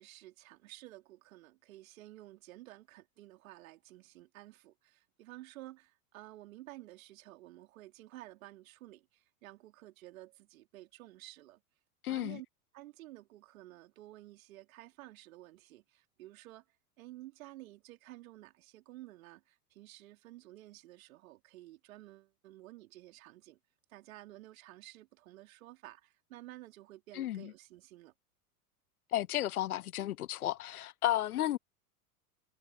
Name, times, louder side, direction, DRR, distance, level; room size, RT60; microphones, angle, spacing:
voice 1, 0.0-11.6 12.1-12.5 12.7-16.7 17.0-23.6 23.9-28.1, right 16 dB, 60° right, 3.5 m, -52 dB
voice 2, 12.0-12.4 27.1-27.5 29.1-31.6, left 13 dB, 70° left, 0.8 m, -33 dB
figure-of-eight pair, 90°, 46 cm